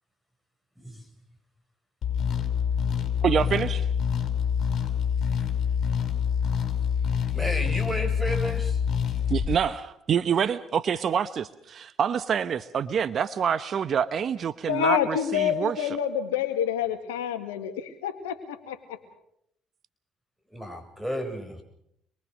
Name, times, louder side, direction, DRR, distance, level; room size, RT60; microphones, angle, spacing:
sound 1, 2.0-9.5, left 7 dB, 55° left, 5.3 m, -26 dB
voice 1, 3.2-3.9 9.3-16.0, right 7 dB, 50° right, 14 dB, 1.0 m, -26 dB
voice 2, 7.3-8.8 20.5-21.6, equal, 5° right, 6 dB, 7.4 m, -32 dB
voice 3, 14.7-19.0, left 9 dB, 80° left, 7 dB, 2.1 m, -28 dB
26.5 x 23.0 x 6.5 m, 0.74 s
hypercardioid pair, 55°, 0 cm